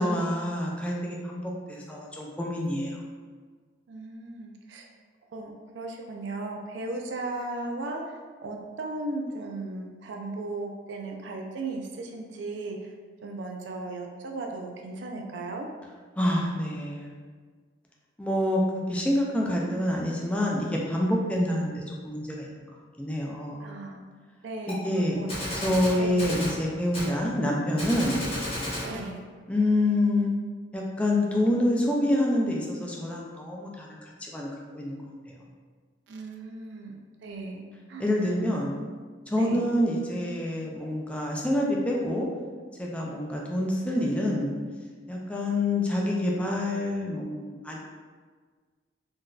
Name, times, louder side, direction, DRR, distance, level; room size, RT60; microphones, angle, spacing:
voice 1, 0.0-3.0 16.2-17.2 18.2-18.6 18.9-22.6 23.0-23.6 24.7-25.2 25.5-28.2 29.5-30.3 30.7-34.5 34.7-35.0 35.3-35.4 38.0-38.8 39.3-42.3 42.8-44.5 45.1-47.8, left 1 dB, 5° left, -2 dB, 0.4 m, -27 dB
voice 2, 3.9-4.9 5.3-12.9 13.2-15.7 23.6-24.0 24.4-26.2 28.8-29.2 36.1-38.0 38.5-38.6 39.3-39.7, right 2 dB, 75° right, 1 dB, 0.4 m, -36 dB
Gunshot gunfire, 24.7-24.8 25.3-26.6 26.9-27.1 27.8-28.9, left 1 dB, 30° left, 0.9 m, -33 dB
3.8 x 2.6 x 2.3 m, 1.5 s
head